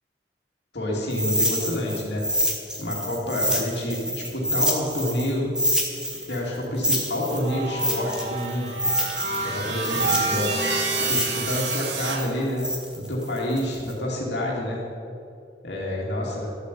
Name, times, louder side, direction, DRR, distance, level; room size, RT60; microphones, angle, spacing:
voice 1, 0.7-2.3 2.8-5.6 6.3-8.8 9.4-10.6 11.0-14.9 15.6-16.5, left 1 dB, 70° left, -4 dB, 2.6 m, -28 dB
sound 1, 1.1-5.3 5.6-9.5 9.8-13.9, equal, 5° right, 2.2 m, -27 dB
sound 2, 7.4-12.2, right 3 dB, 90° right, 2.0 m, -28 dB
13.5 x 8.2 x 8.4 m, 2.7 s
head